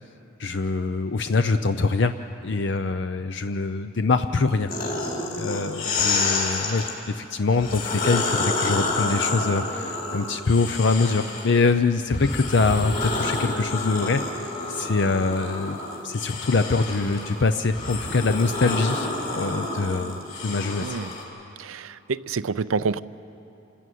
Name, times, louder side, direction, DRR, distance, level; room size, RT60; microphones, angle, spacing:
voice 1, 0.4-2.1 2.4-4.7 5.4-19.1 19.3-20.2 20.4-21.0, left 3 dB, 60° left, 9 dB, 0.5 m, -24 dB
sound 1, 4.7-6.9 7.5-11.6 12.1-21.2, left 3 dB, 40° left, 4.0 m, -29 dB
voice 2, 20.8-21.2 21.6-23.0, right 5 dB, 85° right, 16 dB, 0.5 m, -28 dB
27.5 x 14.5 x 9.3 m, 2.8 s
head